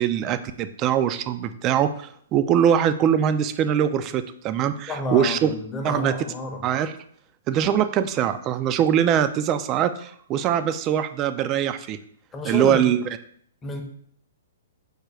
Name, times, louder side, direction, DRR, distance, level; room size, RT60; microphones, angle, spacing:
voice 1, 0.0-5.5 5.8-6.1 6.6-6.9 7.5-12.0 12.4-13.0, right 9 dB, 30° right, 11 dB, 0.3 m, -22 dB
voice 2, 4.9-6.6 12.3-12.9 13.6-13.8, left 2 dB, 15° left, 3 dB, 0.7 m, -30 dB
4.8 x 2.2 x 4.7 m, 0.64 s
hypercardioid pair, 125°, 0 cm